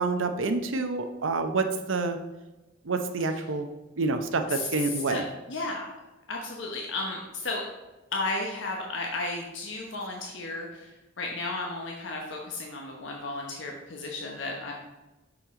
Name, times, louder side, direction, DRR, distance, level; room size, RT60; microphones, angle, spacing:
voice 1, 0.0-2.2 2.9-3.7 4.0-5.2, right 3 dB, 85° right, 7 dB, 0.7 m, -27 dB
voice 2, 4.5-5.9 6.3-7.6 8.1-10.9 11.2-14.7, left 2 dB, 70° left, -1 dB, 1.0 m, -34 dB
6.5 x 6.0 x 3.7 m, 1.1 s
head